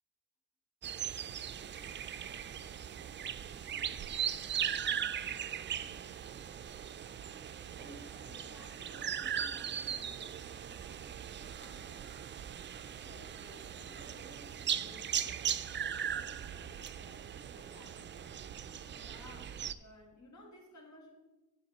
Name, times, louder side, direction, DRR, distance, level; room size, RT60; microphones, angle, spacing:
sound 1, 0.8-19.7, right 9 dB, 35° right, 0.4 m, -39 dB
voice 1, 7.8-18.4, left 2 dB, 85° left, -1 dB, 1.4 m, -58 dB
voice 2, 19.0-21.1, left 1 dB, 60° left, 1 dB, 2.5 m, -55 dB
9.6 x 7.3 x 4.2 m, 1.1 s
cardioid pair, 80°, 33 cm